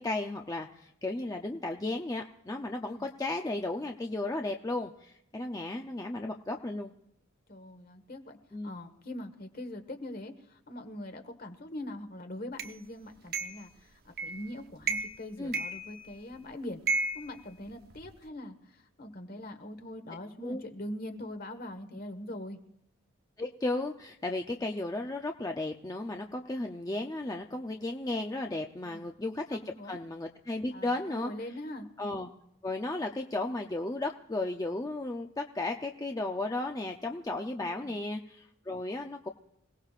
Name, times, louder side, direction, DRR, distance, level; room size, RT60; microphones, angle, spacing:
voice 1, 0.0-6.9 8.5-8.8 15.4-15.6 20.4-20.6 21.9-22.0 23.4-31.3 32.0-32.3 32.6-39.3, left 2 dB, 20° left, 3 dB, 0.6 m, -34 dB
voice 2, 7.5-8.4 8.6-22.6 28.8-29.1 29.5-30.0 30.7-31.9 37.6-38.0, left 1 dB, 50° left, 6 dB, 1.5 m, -42 dB
sound 1, 12.6-12.7 13.3-13.7 14.2-14.5 14.8-15.2 15.5-16.3 16.9-18.1, right 3 dB, 50° right, 0.9 m, -33 dB
27.0 x 17.5 x 2.5 m, 0.80 s
head